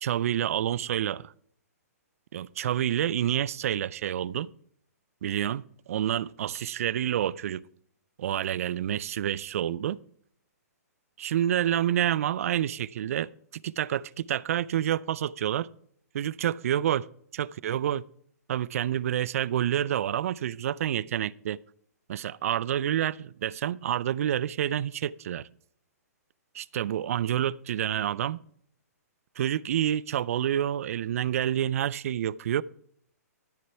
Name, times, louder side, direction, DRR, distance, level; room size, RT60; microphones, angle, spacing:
voice 1, 0.0-1.3 2.3-4.5 5.2-7.6 8.2-10.0 11.2-13.3 13.6-15.7 16.1-17.1 17.3-18.0 18.5-21.6 22.1-25.5 26.5-28.4 29.4-32.6, right 11 dB, 60° right, 0.4 m, -28 dB
13.5 x 6.7 x 4.5 m
hypercardioid pair, 135°, 9 cm